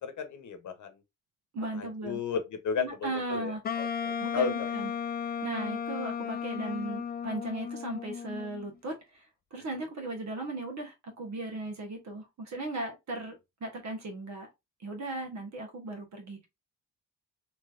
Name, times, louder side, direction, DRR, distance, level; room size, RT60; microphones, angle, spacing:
voice 1, 0.0-0.9 1.7-4.7, left 6 dB, 60° left, 0.9 m, -34 dB
voice 2, 1.5-2.2 2.8-3.6 4.2-4.9 5.4-8.9 9.5-13.3 13.6-14.5 14.8-16.5, right 2 dB, 55° right, 1.4 m, -37 dB
Wind instrument woodwind instrument, 3.6-8.7, left 7 dB, 30° left, 0.3 m, -35 dB
3.2 x 3.1 x 2.5 m
cardioid pair, 75°, 33 cm